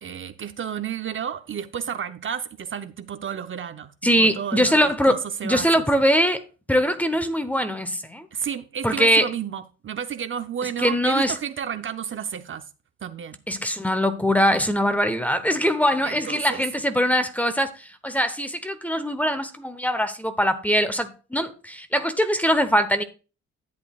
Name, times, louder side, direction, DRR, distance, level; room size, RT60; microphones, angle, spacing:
voice 1, 0.0-5.8 8.3-12.7 13.0-13.4 16.0-16.6, right 8 dB, 40° right, 0.7 m, -32 dB
voice 2, 4.0-5.1 5.4-6.4 6.7-8.3 8.8-9.3 10.8-11.3 13.5-23.0, equal, 5° left, 0.9 m, -22 dB
11.0 x 8.1 x 2.4 m
cardioid pair, 90°, 30 cm